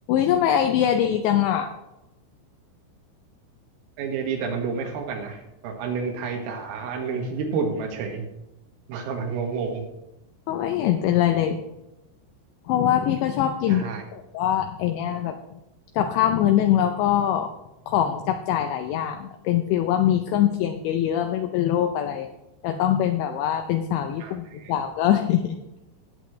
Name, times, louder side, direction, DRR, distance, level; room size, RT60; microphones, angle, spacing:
voice 1, 0.1-1.7 10.5-11.6 12.7-15.3 16.0-17.5 17.9-22.3 22.6-25.6, left 10 dB, 85° left, 6 dB, 2.6 m, -23 dB
voice 2, 4.0-8.3 8.9-9.8 13.7-14.0 24.2-24.7, right 5 dB, 85° right, 2 dB, 4.4 m, -30 dB
18.0 x 8.2 x 3.1 m, 0.93 s
omnidirectional pair, 5.9 m